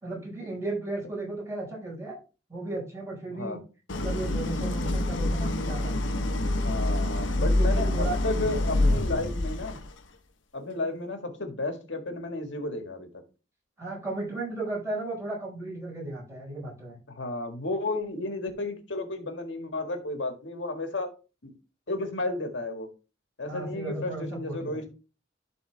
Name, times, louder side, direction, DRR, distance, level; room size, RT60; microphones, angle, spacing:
voice 1, 0.0-2.2 2.5-3.6 3.9-6.3 7.4-9.2 13.8-17.0 23.4-24.8, right 2 dB, 15° right, -4 dB, 4.7 m, -35 dB
Idling, 3.9-10.0, left 1 dB, 90° left, 1.0 m, -26 dB
voice 2, 6.5-9.8 10.5-13.1 17.1-21.1 21.4-21.5 21.9-22.9 23.4-24.9, left 2 dB, 70° left, 5 dB, 1.8 m, -33 dB
11.5 x 4.1 x 3.4 m, 0.33 s
head